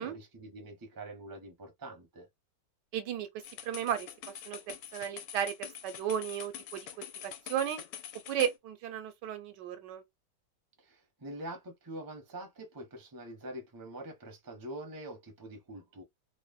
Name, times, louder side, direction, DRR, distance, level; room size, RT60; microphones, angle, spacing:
voice 1, 0.0-2.3 10.8-16.0, right 1 dB, 25° right, 0.5 m, -45 dB
voice 2, 2.9-3.3 3.6-4.1 4.4-7.8 8.3-10.0, right 9 dB, 80° right, 1.3 m, -34 dB
sound 1, 3.4-8.6, left 10 dB, 85° left, 1.3 m, -45 dB
3.1 x 2.1 x 2.3 m
omnidirectional pair, 1.9 m